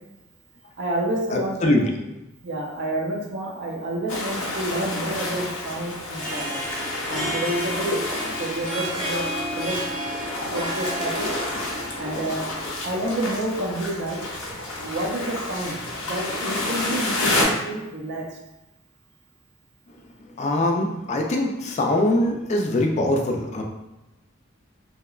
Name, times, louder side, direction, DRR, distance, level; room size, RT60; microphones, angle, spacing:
voice 1, 0.8-1.9 2.4-6.6 7.1-8.0 8.4-9.8 10.5-11.3 12.0-12.4 12.8-14.2 14.8-18.2, right 1 dB, 55° right, -1 dB, 0.5 m, -29 dB
voice 2, 1.3-1.8 20.4-23.6, left 1 dB, 35° left, 1 dB, 0.3 m, -22 dB
sound 1, 4.1-17.4, left 2 dB, 90° left, 0.6 m, -29 dB
Harp, 6.0-13.4, right 1 dB, 5° left, 0.8 m, -33 dB
2.8 x 2.1 x 2.3 m, 0.98 s
head